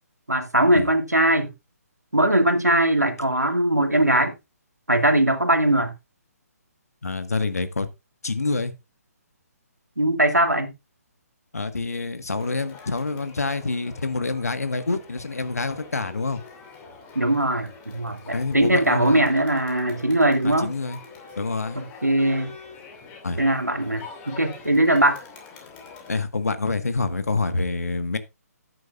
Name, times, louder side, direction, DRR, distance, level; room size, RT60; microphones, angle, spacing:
voice 1, 0.3-1.5 2.1-4.4 4.9-5.9 10.0-10.7 17.2-20.7 21.8-22.5 23.4-25.2, right 1 dB, 85° right, 2.2 m, -20 dB
voice 2, 7.0-7.9 8.2-8.7 11.5-16.4 18.3-19.3 20.4-21.0 21.4-21.8 23.2-23.4 26.1-28.2, left 3 dB, 65° left, 1.6 m, -27 dB
Crowd, 12.4-26.1, left 5 dB, 20° left, 2.7 m, -45 dB
13.5 x 9.4 x 2.5 m
figure-of-eight pair, 135°, 9 cm